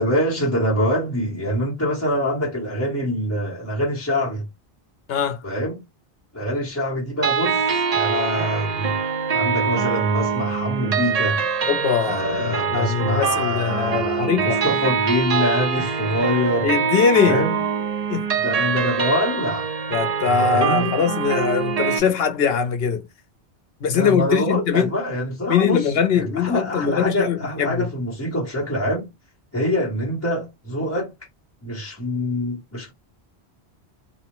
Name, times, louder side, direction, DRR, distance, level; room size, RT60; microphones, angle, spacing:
voice 1, 0.0-4.4 5.4-5.8 6.3-8.9 9.3-11.4 12.0-16.7 17.2-17.6 18.4-19.7 20.2-20.9 23.9-29.1 29.5-31.1 31.6-32.9, equal, 15° left, 0.8 m, -25 dB
voice 2, 5.1-5.4 11.7-14.6 16.6-17.4 18.1-18.2 19.9-23.0 23.8-24.9 25.5-27.9, left 7 dB, 65° left, 0.9 m, -21 dB
sound 1, 7.2-22.0, right 6 dB, 45° right, 0.5 m, -24 dB
2.9 x 2.0 x 3.0 m
omnidirectional pair, 1.1 m